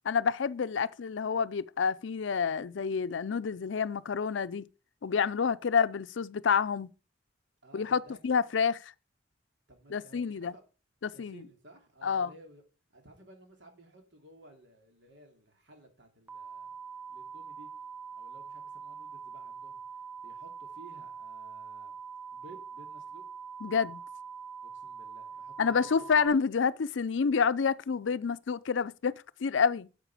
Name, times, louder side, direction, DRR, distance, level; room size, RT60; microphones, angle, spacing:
voice 1, 0.0-4.7 5.0-6.9 7.7-8.8 9.9-10.5 11.0-11.4 12.0-12.3 23.6-24.0 25.6-29.1 29.4-29.9, left 6 dB, 80° left, 0.5 m, -28 dB
voice 2, 7.6-8.4 9.7-10.6 11.1-12.6 12.9-16.7 17.1-17.7 18.2-19.8 20.2-21.9 22.3-23.2 24.6-26.1, right 2 dB, 70° right, 3.1 m, -55 dB
sound 1, 16.3-26.3, right 6 dB, 10° right, 0.8 m, -44 dB
10.0 x 7.4 x 4.9 m
head